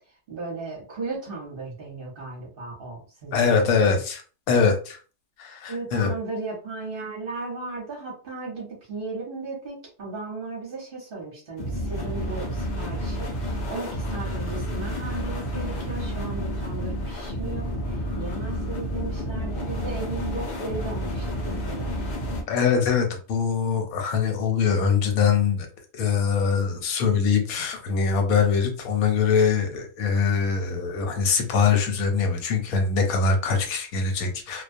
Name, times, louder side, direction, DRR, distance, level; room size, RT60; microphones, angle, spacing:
voice 1, 0.3-3.8 5.7-21.9, right 3 dB, 45° right, -3 dB, 0.8 m, -36 dB
voice 2, 3.3-5.0 5.4-6.1 22.5-25.7 25.9-34.6, left 5 dB, 90° left, 4 dB, 1.1 m, -23 dB
sound 1, 11.6-22.4, equal, 50° left, 0.5 m, -30 dB
2.3 x 2.2 x 2.5 m, 0.38 s
omnidirectional pair, 1.5 m